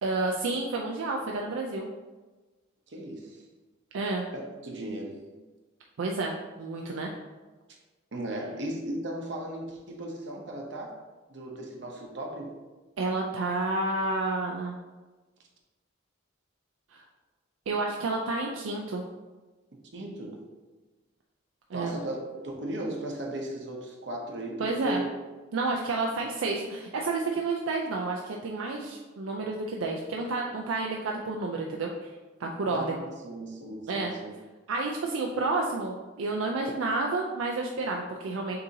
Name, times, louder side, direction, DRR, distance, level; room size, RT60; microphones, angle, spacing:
voice 1, 0.0-1.9 3.9-4.2 6.0-7.1 13.0-14.7 16.9-17.0 17.7-19.0 21.7-21.9 24.6-25.0 25.5-31.9 32.4-32.9 33.9-34.1 34.7-38.6, right 3 dB, 80° right, 0 dB, 0.4 m, -30 dB
voice 2, 2.9-3.4 4.3-5.2 8.1-11.0 11.3-12.5 19.9-20.5 21.7-25.1 32.7-34.3, right 1 dB, 60° right, 0 dB, 0.8 m, -36 dB
6.6 x 2.7 x 2.7 m, 1.2 s
head